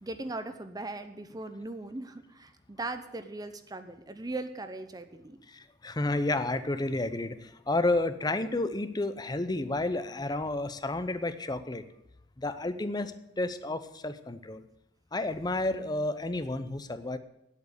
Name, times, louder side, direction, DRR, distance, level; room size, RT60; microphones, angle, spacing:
voice 1, 0.0-5.4, right 2 dB, 20° right, 9 dB, 0.7 m, -39 dB
voice 2, 5.5-11.8 12.4-14.6 15.1-17.2, left 2 dB, 20° left, 12 dB, 0.7 m, -31 dB
9.4 x 8.3 x 8.1 m, 0.87 s
head